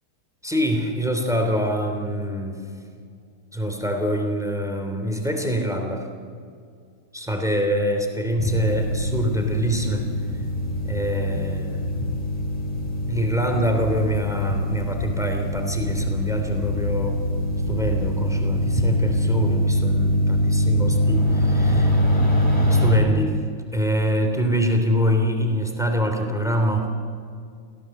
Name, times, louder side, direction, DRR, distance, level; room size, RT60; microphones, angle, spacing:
voice 1, 0.4-2.7 3.5-6.1 7.1-10.1 10.8-11.9 13.0-17.2 17.7-22.0 22.6-23.4 23.7-26.9, equal, ahead, 3 dB, 2.9 m, -25 dB
sound 1, 8.4-23.0, equal, 15° left, 3.7 m, -23 dB
26.0 x 17.0 x 7.7 m, 2.2 s
omnidirectional pair, 2.4 m